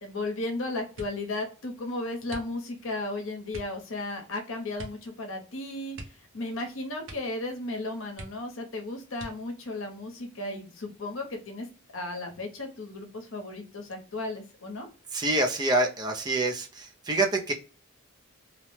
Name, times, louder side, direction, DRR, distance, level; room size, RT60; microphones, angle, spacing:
voice 1, 0.0-11.7 11.9-14.9, left 2 dB, 65° left, 3 dB, 0.8 m, -35 dB
sound 1, 0.9-1.4 2.2-2.9 3.5-3.8 4.7-5.1 5.4-5.5 5.9-6.7 7.0-7.4 7.7-7.8 8.1-8.7 9.1-9.7 10.4-11.0 11.4-11.8, right 1 dB, 65° right, 0.7 m, -45 dB
voice 2, 15.1-17.5, right 2 dB, 20° right, 3 dB, 0.4 m, -26 dB
2.8 x 2.0 x 3.1 m, 0.35 s
head